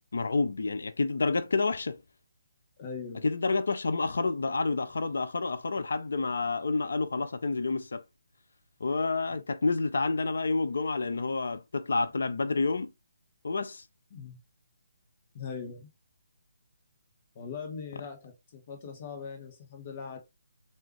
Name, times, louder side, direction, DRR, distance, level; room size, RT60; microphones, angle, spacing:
voice 1, 0.1-2.0 3.2-8.0 8.8-12.9 13.4-13.8, left 3 dB, 60° left, 0.4 m, -29 dB
voice 2, 2.8-3.3 14.1-14.4 15.3-15.9 17.3-20.2, left 6 dB, 35° left, 1.0 m, -40 dB
3.4 x 2.2 x 3.1 m
figure-of-eight pair, 140°, 0 cm